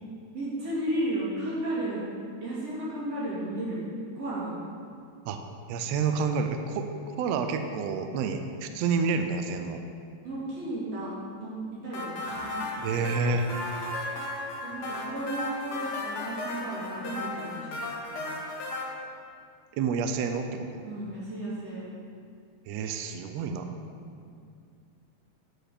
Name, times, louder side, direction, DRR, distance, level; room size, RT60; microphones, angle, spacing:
voice 1, 0.3-2.0 2.4-3.8 4.1-4.5 10.2-11.1 11.4-12.7 14.6-18.3 20.8-21.9, right 1 dB, 55° right, -8 dB, 3.2 m, -34 dB
voice 2, 5.7-9.8 12.8-13.5 19.7-20.8 22.7-23.7, right 5 dB, 80° right, 6 dB, 1.5 m, -29 dB
sound 1, 11.9-18.8, left 2 dB, 55° left, 1.8 m, -35 dB
10.0 x 5.1 x 5.0 m, 2.3 s
omnidirectional pair, 3.5 m